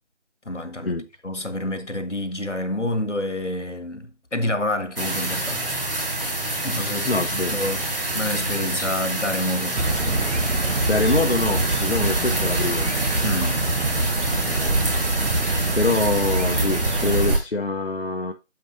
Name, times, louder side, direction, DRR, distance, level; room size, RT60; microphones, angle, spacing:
voice 1, 0.5-1.0 1.2-5.6 6.6-7.8 8.1-9.8 13.2-13.6, left 1 dB, 80° left, 1.8 m, -28 dB
sound 1, 5.0-17.4, right 1 dB, 50° right, 4.4 m, -27 dB
voice 2, 7.0-7.5 8.8-8.9 10.9-12.9 14.3-15.5 15.7-18.3, left 3 dB, 60° left, 0.9 m, -25 dB
sound 2, 9.7-17.4, right 2 dB, 75° right, 1.1 m, -24 dB
9.5 x 6.9 x 2.6 m
figure-of-eight pair, 165°, 36 cm